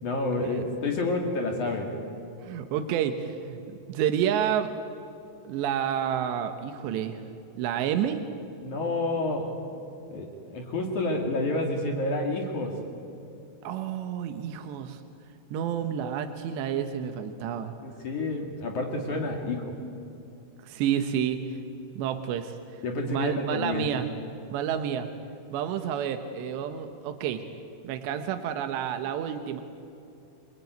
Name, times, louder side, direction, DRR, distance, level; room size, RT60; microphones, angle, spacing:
voice 1, 0.0-1.9 8.6-9.6 10.1-12.8 17.8-19.8 22.8-23.9, left 2 dB, 50° left, 2 dB, 3.3 m, -29 dB
voice 2, 2.4-3.6 3.9-4.7 5.4-7.2 7.6-8.2 13.6-15.0 15.5-17.7 20.6-21.4 22.0-22.6 23.1-24.1 24.5-25.1 25.5-27.4 27.8-29.6, right 9 dB, 80° right, 7 dB, 3.3 m, -29 dB
27.5 x 22.0 x 9.3 m, 2.7 s
omnidirectional pair, 5.1 m